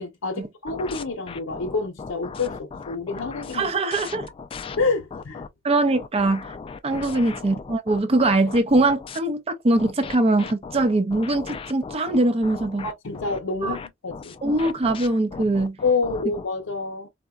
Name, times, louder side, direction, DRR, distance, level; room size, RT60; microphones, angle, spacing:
voice 1, 0.0-3.7 4.8-5.5 6.9-7.0 12.8-14.4 15.8-17.1, left 4 dB, 90° left, 0.7 m, -28 dB
sound 1, 0.7-5.5 5.9-9.2 9.8-16.5, left 5 dB, 25° left, 0.3 m, -37 dB
voice 2, 3.5-4.3 5.6-6.5 6.8-12.9 13.6-13.8 14.4-15.8, right 2 dB, 30° right, 0.5 m, -22 dB
3.8 x 2.2 x 2.2 m
head